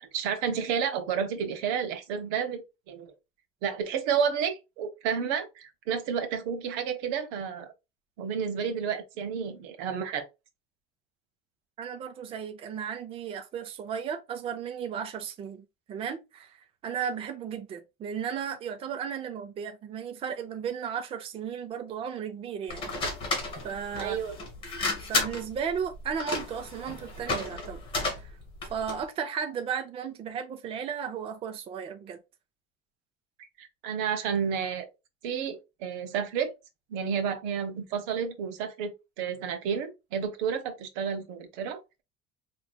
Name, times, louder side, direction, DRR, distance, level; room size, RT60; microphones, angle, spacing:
voice 1, 0.0-3.1 3.6-7.7 8.2-10.3 24.0-24.4 33.4-34.9 35.2-36.6 36.9-41.8, right 7 dB, 90° right, 1.1 m, -31 dB
voice 2, 11.8-16.6 16.8-22.9 23.6-24.2 25.1-28.3 28.7-32.2, right 7 dB, 30° right, 0.5 m, -35 dB
sound 1, 22.7-29.0, left 3 dB, 25° left, 1.8 m, -33 dB
5.2 x 3.1 x 2.2 m
cardioid pair, 170°, 20 cm